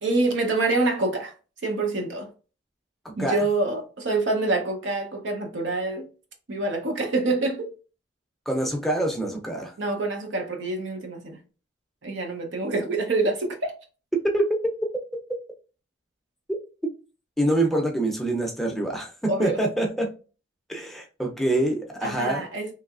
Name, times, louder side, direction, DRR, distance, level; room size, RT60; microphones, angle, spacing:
voice 1, 0.0-1.3 1.6-2.3 3.2-6.1 6.5-7.7 9.8-11.4 12.0-13.7 19.3-19.6 22.0-22.7, right 2 dB, 80° right, 0.7 m, -26 dB
voice 2, 3.0-3.4 8.5-9.7 14.2-14.6 17.4-20.1 20.7-22.4, right 1 dB, ahead, 0.5 m, -25 dB
3.1 x 2.7 x 2.4 m
head